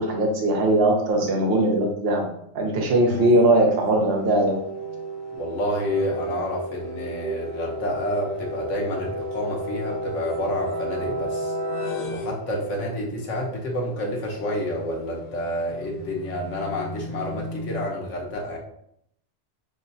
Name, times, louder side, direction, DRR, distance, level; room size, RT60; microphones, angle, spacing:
voice 1, 0.0-2.3 2.5-4.6, right 1 dB, 55° right, 1 dB, 1.0 m, -20 dB
sound 1, 3.1-13.0 15.2-17.9, equal, 55° left, 0.9 m, -33 dB
voice 2, 5.4-11.5 12.1-18.6, left 1 dB, 75° left, -1 dB, 1.3 m, -29 dB
6.3 x 2.2 x 2.6 m, 0.72 s
omnidirectional pair, 1.3 m